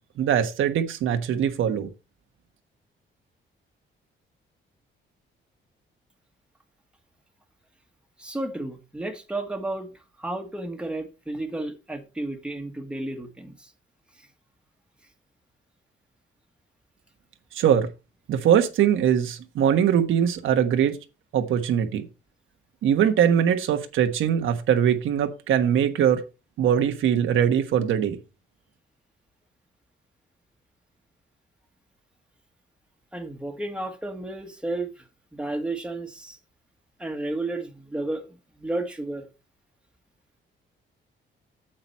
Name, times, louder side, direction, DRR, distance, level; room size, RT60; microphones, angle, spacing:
voice 1, 0.2-1.9 17.5-17.9 18.3-21.0 21.3-22.0 22.8-26.2 26.6-28.2, right 9 dB, 85° right, 1.3 m, -22 dB
voice 2, 8.2-9.9 10.2-13.7 33.1-35.0 35.3-36.4 37.0-38.3 38.6-39.2, right 2 dB, 5° right, 1.5 m, -32 dB
8.9 x 7.8 x 4.3 m
cardioid pair, 150°, 20 cm